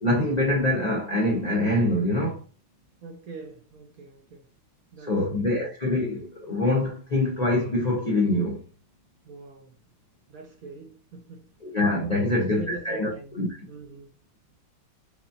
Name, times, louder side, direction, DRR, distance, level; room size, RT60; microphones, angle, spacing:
voice 1, 0.0-2.4 5.0-8.6 11.6-13.1 13.4-13.6, left 1 dB, 65° left, 0.4 m, -24 dB
voice 2, 3.0-4.5 4.9-5.6 9.2-9.8 10.3-11.5 12.1-13.3 13.7-14.1, right 3 dB, 65° right, 0.9 m, -42 dB
4.8 x 2.5 x 2.6 m
omnidirectional pair, 2.1 m